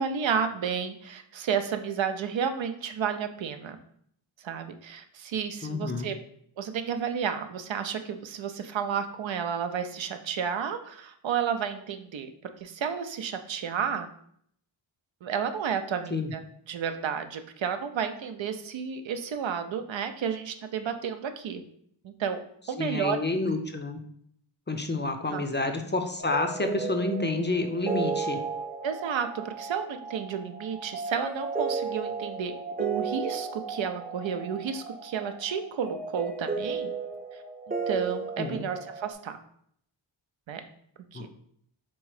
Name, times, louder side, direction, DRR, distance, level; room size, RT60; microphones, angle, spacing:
voice 1, 0.0-3.8 4.4-6.1 6.6-12.3 12.6-14.1 15.2-16.4 16.7-21.6 22.0-22.4 22.7-23.2 25.3-25.4 28.8-32.5 32.8-36.9 37.7-39.4 40.5-40.6 41.1-41.3, right 7 dB, 75° right, 8 dB, 0.6 m, -31 dB
voice 2, 5.6-6.1 16.1-16.3 22.8-24.0 24.7-28.4 38.4-38.6 41.1-41.3, left 2 dB, 25° left, 5 dB, 0.5 m, -29 dB
sound 1, 26.2-39.1, right 4 dB, 20° right, 0.6 m, -34 dB
3.6 x 3.1 x 4.8 m, 0.67 s
wide cardioid pair, 90°, 46 cm